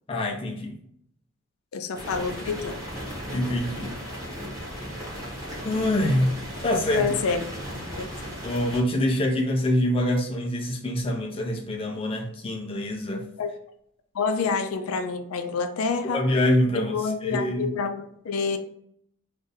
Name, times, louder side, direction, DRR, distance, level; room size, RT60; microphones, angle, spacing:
voice 1, 0.1-0.8 3.3-3.9 5.6-6.4 6.6-7.4 8.4-13.2 16.0-17.7, left 1 dB, 25° left, 1 dB, 0.4 m, -25 dB
voice 2, 1.7-2.8 6.9-7.4 7.8-8.1 13.4-13.5 14.1-16.3 16.7-18.6, left 5 dB, 90° left, 8 dB, 0.4 m, -28 dB
sound 1, 1.9-8.8, equal, 15° right, 1.0 m, -36 dB
2.6 x 2.5 x 3.9 m, 0.69 s
head